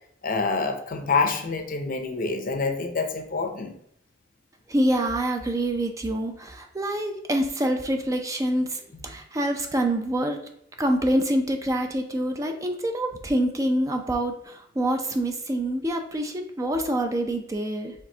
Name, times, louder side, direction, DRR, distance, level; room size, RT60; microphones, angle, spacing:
voice 1, 0.2-3.7 8.9-9.0, left 4 dB, 50° left, 5 dB, 0.6 m, -27 dB
voice 2, 4.7-10.4 10.8-17.9, right 1 dB, 20° right, 4 dB, 0.4 m, -26 dB
5.1 x 3.4 x 2.7 m, 0.71 s
head